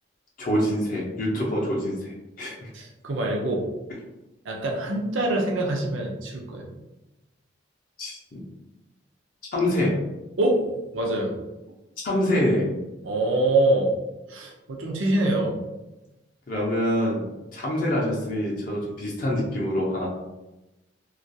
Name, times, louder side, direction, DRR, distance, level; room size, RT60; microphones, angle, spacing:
voice 1, 0.4-2.1 2.4-2.7 8.0-8.4 9.5-10.0 12.0-12.7 16.5-17.2 17.5-20.1, left 1 dB, 45° left, -3 dB, 0.5 m, -25 dB
voice 2, 2.7-3.6 4.5-6.7 10.4-10.6 10.9-11.3 13.0-13.9 14.3-15.6, right 2 dB, 90° right, -1 dB, 0.6 m, -24 dB
2.3 x 2.2 x 2.6 m, 1.0 s
head